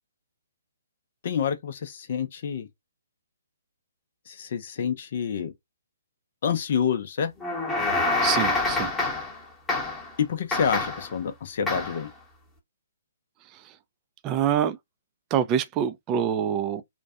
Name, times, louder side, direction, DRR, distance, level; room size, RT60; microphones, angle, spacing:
voice 1, 1.2-2.7 4.3-5.5 6.4-7.3 10.2-12.1, left 7 dB, 50° left, 0.5 m, -28 dB
sound 1, 7.4-9.4 9.7-10.1 10.5-11.1 11.7-12.1, left 2 dB, 10° left, 0.9 m, -26 dB
voice 2, 8.2-8.9 13.5-13.7 14.2-14.8 15.3-16.8, right 9 dB, 25° right, 0.3 m, -26 dB
2.5 x 2.2 x 2.3 m
hypercardioid pair, 135°, 0 cm